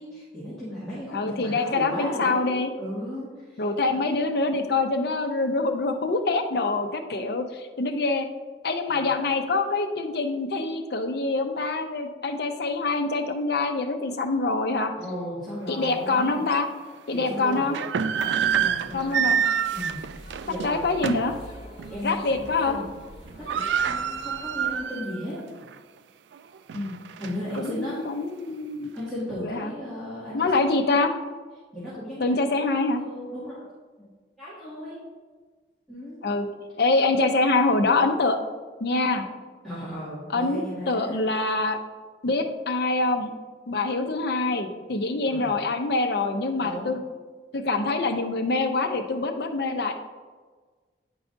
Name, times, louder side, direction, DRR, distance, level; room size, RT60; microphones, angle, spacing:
voice 1, 0.0-3.7 8.9-9.1 15.0-16.5 17.1-17.7 18.2-19.3 19.7-20.0 20.4-20.8 21.1-21.3 21.9-22.9 23.4-25.4 27.2-28.0 28.9-30.8 31.7-32.4 33.0-33.7 34.0-34.1 34.4-35.0 35.9-36.2 39.6-41.2 45.2-45.6 46.6-47.0, equal, 5° left, -13 dB, 2.0 m, -36 dB
voice 2, 1.1-2.7 3.6-8.3 8.6-14.9 15.7-16.7 17.1-17.7 18.9-19.4 20.6-21.3 22.0-22.8 26.7-27.0 27.6-29.0 29.4-29.7 30.3-31.1 32.2-33.0 36.2-36.5 36.8-38.4 38.8-39.2 40.3-41.8 42.2-43.3 43.7-47.0 47.5-49.9, left 3 dB, 65° left, 6 dB, 0.6 m, -25 dB
sound 1, 15.8-15.9 16.5-16.6 17.5-21.4 21.8-22.0 22.3-22.7 23.0-23.1 23.3-25.2 25.6-25.7 26.3-27.7, right 8 dB, 80° right, 0.3 m, -27 dB
sound 2, 18.1-24.8, equal, 40° left, 2.1 m, -47 dB
9.7 x 4.8 x 2.6 m, 1.4 s
head